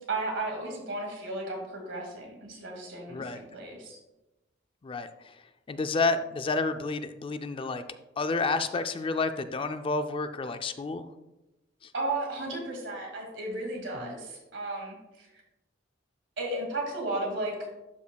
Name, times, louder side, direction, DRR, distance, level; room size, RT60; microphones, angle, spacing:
voice 1, 0.1-4.0 11.9-15.3 16.4-17.5, right 2 dB, 75° right, 1 dB, 2.1 m, -34 dB
voice 2, 3.1-3.4 4.8-7.8 8.2-11.1 11.8-11.9 13.9-14.2, left 3 dB, 30° left, 10 dB, 0.3 m, -30 dB
11.5 x 5.3 x 2.3 m, 0.98 s
head